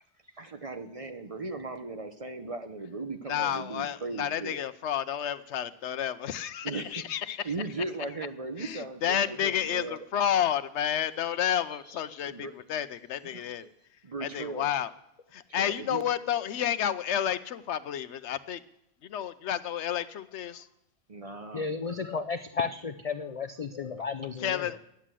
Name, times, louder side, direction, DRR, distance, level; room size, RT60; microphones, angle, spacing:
voice 1, 0.4-4.6 6.6-6.9 7.4-10.0 12.2-12.5 13.3-13.4 14.0-14.7 15.6-16.0 21.1-21.7, right 3 dB, 35° right, 7 dB, 0.8 m, -37 dB
voice 2, 3.3-7.5 8.6-13.7 14.2-14.9 15.3-18.6 19.0-20.7 24.4-24.8, left 9 dB, 75° left, 14 dB, 1.0 m, -30 dB
voice 3, 21.5-24.8, left 5 dB, 45° left, 8 dB, 0.5 m, -33 dB
11.5 x 10.0 x 7.5 m, 0.81 s
omnidirectional pair, 1.2 m